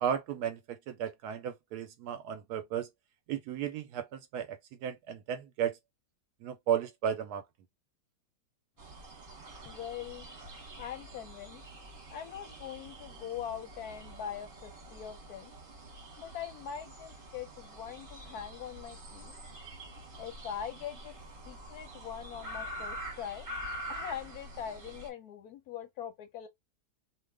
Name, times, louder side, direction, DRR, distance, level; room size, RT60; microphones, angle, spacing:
voice 1, 0.0-2.9 3.3-5.8 6.4-7.4, right 8 dB, 70° right, 1.0 m, -34 dB
sound 1, 8.8-25.1, right 1 dB, 35° right, 1.0 m, -46 dB
voice 2, 9.6-10.3 10.8-11.6 12.1-15.5 16.2-19.3 20.2-21.1 21.4-23.5 23.9-26.5, left 9 dB, 70° left, 1.0 m, -42 dB
2.7 x 2.3 x 3.3 m
omnidirectional pair, 1.9 m